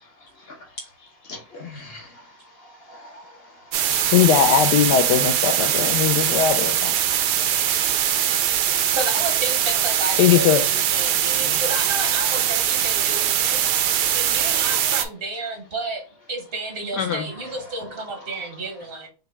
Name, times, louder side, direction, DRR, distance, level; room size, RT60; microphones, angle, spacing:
voice 1, 1.2-2.2 2.6-4.1 7.4-7.5 11.4-11.6 12.1-12.2 17.1-17.5, left 2 dB, 50° left, 0.7 m, -41 dB
sound 1, 3.7-15.0, right 10 dB, 75° right, 1.0 m, -22 dB
voice 2, 4.1-6.9 10.2-10.6 13.6-13.7 17.0-17.2, left 9 dB, 75° left, 0.9 m, -19 dB
voice 3, 8.9-13.6 14.1-16.0 16.3-19.1, right 2 dB, 50° right, 0.7 m, -31 dB
6.0 x 2.2 x 3.3 m
omnidirectional pair, 2.2 m